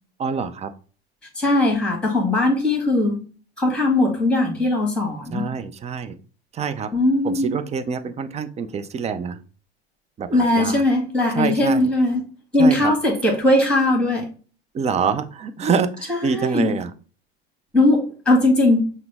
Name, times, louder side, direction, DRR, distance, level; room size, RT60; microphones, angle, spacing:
voice 1, 0.2-0.7 5.3-6.2 6.5-6.9 7.2-9.4 10.2-10.8 11.3-11.9 12.6-12.9 14.7-16.9, right 6 dB, 20° right, 10 dB, 0.5 m, -26 dB
voice 2, 1.4-3.2 3.6-5.5 6.9-7.6 10.3-12.3 12.5-14.3 16.1-16.7 17.7-18.8, left 1 dB, 5° left, 1 dB, 1.8 m, -19 dB
5.8 x 2.1 x 3.4 m, 0.38 s
hypercardioid pair, 85°, 31 cm